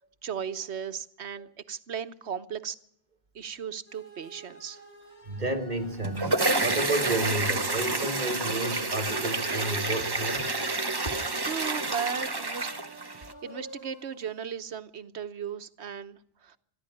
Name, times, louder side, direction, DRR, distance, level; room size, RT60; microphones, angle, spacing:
voice 1, 0.2-2.8 3.3-4.8 11.0-11.1 11.4-12.7 13.1-16.6, right 7 dB, 85° right, 12 dB, 1.3 m, -36 dB
sound 1, 3.9-14.4, equal, 70° left, 5.8 m, -51 dB
voice 2, 5.2-10.6, right 2 dB, 45° right, 6 dB, 2.3 m, -31 dB
sound 2, 5.8-13.3, right 2 dB, 25° right, 1.0 m, -29 dB
26.0 x 11.5 x 9.9 m, 0.72 s
omnidirectional pair, 1.1 m